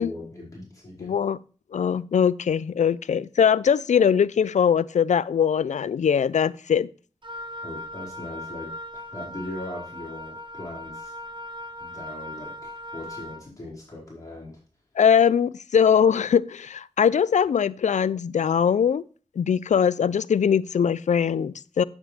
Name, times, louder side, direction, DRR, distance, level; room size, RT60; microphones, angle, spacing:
voice 1, 0.0-1.1 7.6-8.7 9.1-11.1 11.8-14.5, left 1 dB, 30° left, -6 dB, 4.5 m, -39 dB
voice 2, 1.0-1.4 1.7-6.9 15.0-19.0 19.4-21.8, left 7 dB, 80° left, 19 dB, 0.4 m, -21 dB
Wind instrument woodwind instrument, 7.2-13.5, left 1 dB, 40° right, 1.1 m, -38 dB
8.9 x 8.2 x 3.3 m, 0.38 s
wide cardioid pair, 55°, 12 cm